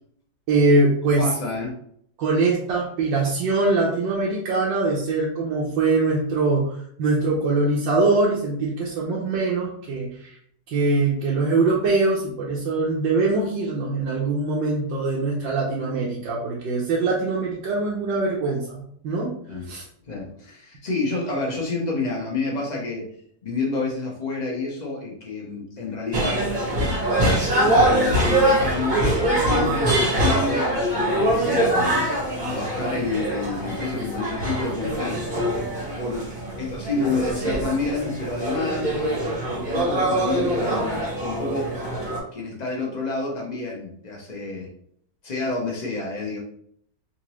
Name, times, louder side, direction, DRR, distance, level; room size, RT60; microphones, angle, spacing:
voice 1, 0.5-1.3 2.2-10.3 10.7-19.3 19.7-19.8, right 3 dB, 90° right, -4 dB, 1.4 m, -22 dB
voice 2, 1.2-1.7 19.5-19.6 20.1-23.0 23.4-26.5 27.5-29.0 29.4-32.1 32.4-35.2 36.0-36.3 36.6-38.9 39.4-41.7 42.3-44.7 45.2-46.4, left 3 dB, 35° left, -3 dB, 0.7 m, -29 dB
sound 1, 26.1-42.2, right 1 dB, 35° right, 0.9 m, -23 dB
3.9 x 2.6 x 3.0 m, 0.66 s
omnidirectional pair, 1.9 m